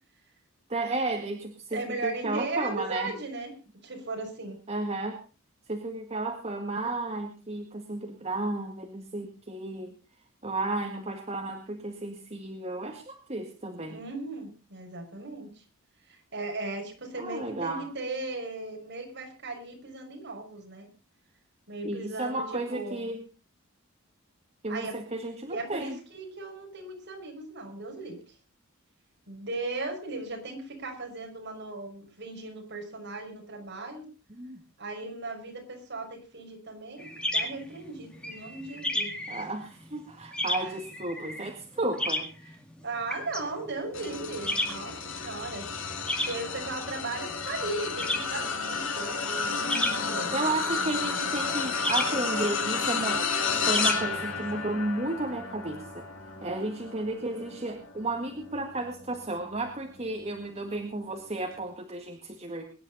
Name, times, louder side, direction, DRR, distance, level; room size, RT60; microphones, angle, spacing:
voice 1, 0.7-3.1 4.7-5.2 5.7-9.9 10.4-14.0 17.2-17.8 21.8-23.2 24.6-26.0 34.4-34.6 39.3-42.3 50.3-56.0 56.4-62.6, right 2 dB, 30° right, 2 dB, 1.9 m, -33 dB
voice 2, 1.7-3.5 3.8-4.6 13.9-15.6 16.1-20.9 21.7-23.1 24.7-25.0 25.5-28.3 29.3-34.1 34.8-39.4 40.6-40.8 42.8-50.5, right 2 dB, 55° right, 1 dB, 5.8 m, -37 dB
sound 1, 37.0-54.6, left 1 dB, 5° left, 2.2 m, -34 dB
sound 2, 43.9-59.4 60.0-60.2 61.5-61.6, left 5 dB, 65° left, 2.7 m, -32 dB
23.0 x 10.5 x 4.2 m, 0.33 s
head